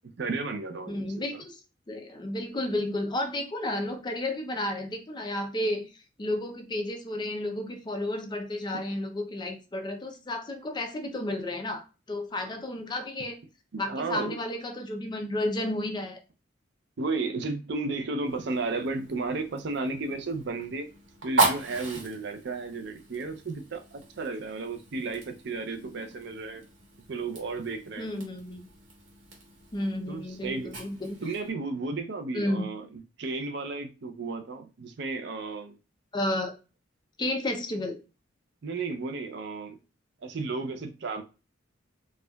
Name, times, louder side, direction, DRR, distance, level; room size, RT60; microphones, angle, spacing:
voice 1, 0.2-1.1 1.3-1.4 12.3-12.5 13.7-14.4 17.0-20.9 21.2-26.6 27.1-28.1 30.1-30.7 31.2-32.9 33.2-35.7 38.6-39.8 40.2-41.2, right 3 dB, 65° right, 0.5 m, -33 dB
voice 2, 0.9-1.6 1.9-5.8 6.2-13.4 13.8-16.2 28.0-28.7 29.7-31.2 32.3-32.7 36.1-36.5 37.2-38.0, left 1 dB, 25° left, 0.6 m, -32 dB
Fire, 18.2-31.5, right 3 dB, 85° right, 1.3 m, -36 dB
4.3 x 2.3 x 2.3 m
head